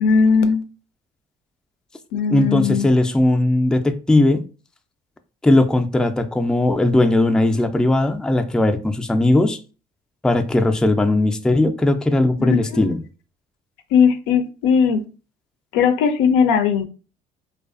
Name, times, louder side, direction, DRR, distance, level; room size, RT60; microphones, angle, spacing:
voice 1, 0.0-0.6 2.1-2.9 12.4-12.9 13.9-15.0 15.7-16.9, left 6 dB, 80° left, 0.4 m, -18 dB
voice 2, 2.3-4.4 5.4-9.6 10.2-13.0, left 1 dB, 5° left, 0.3 m, -18 dB
2.4 x 2.2 x 2.4 m
supercardioid pair, 70°, 18 cm